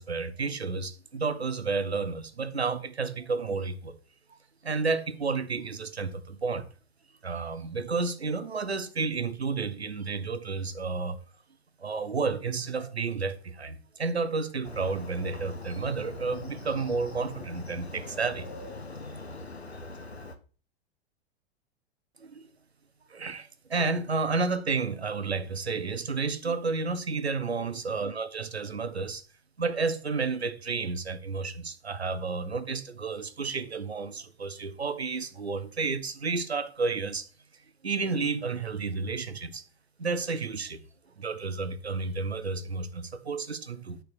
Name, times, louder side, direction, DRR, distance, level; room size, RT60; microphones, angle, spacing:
voice 1, 0.0-4.0 4.3-4.4 4.6-6.7 7.2-11.2 11.8-18.5 22.2-22.5 23.1-29.2 29.6-37.3 37.8-39.6 40.0-40.8 41.2-44.0, right 4 dB, 80° right, 1.3 m, -31 dB
Motorcycle, 14.6-20.4, left 2 dB, 85° left, 1.4 m, -42 dB
11.5 x 4.7 x 6.5 m
figure-of-eight pair, 100°, 31 cm